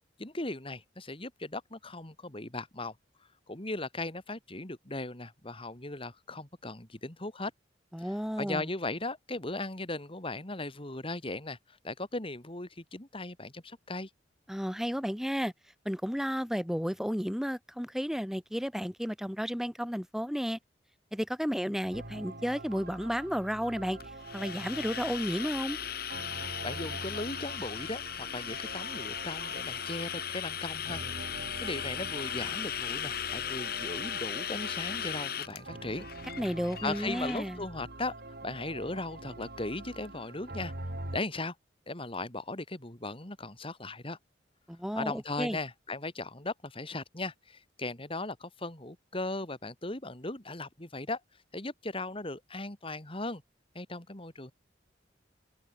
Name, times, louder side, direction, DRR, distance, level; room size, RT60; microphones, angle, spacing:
voice 1, 0.2-2.9 3.2-7.5 8.0-14.1 26.6-31.3 31.6-36.1 36.8-38.1 38.4-40.7 41.1-41.5 41.9-44.2 45.0-53.4 53.7-54.5, left 2 dB, 30° left, 2.8 m, -38 dB
voice 2, 7.9-8.7 14.5-15.5 15.8-20.6 21.1-24.0 24.3-25.8 36.4-37.6 44.7-45.6, equal, ahead, 6.5 m, -32 dB
sound 1, 21.9-41.2, right 2 dB, 60° right, 3.4 m, -44 dB
sound 2, 24.0-37.4, left 9 dB, 55° left, 6.6 m, -37 dB
head